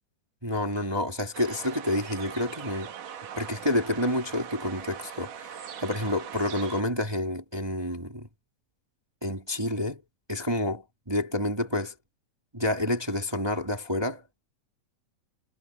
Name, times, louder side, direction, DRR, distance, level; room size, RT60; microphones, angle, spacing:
voice 1, 0.4-2.9 3.3-8.3 9.2-10.0 10.3-11.9 12.5-14.2, left 1 dB, 10° right, 1.4 m, -29 dB
sound 1, 1.3-6.8, right 8 dB, 75° right, 3.4 m, -41 dB
omnidirectional pair, 3.8 m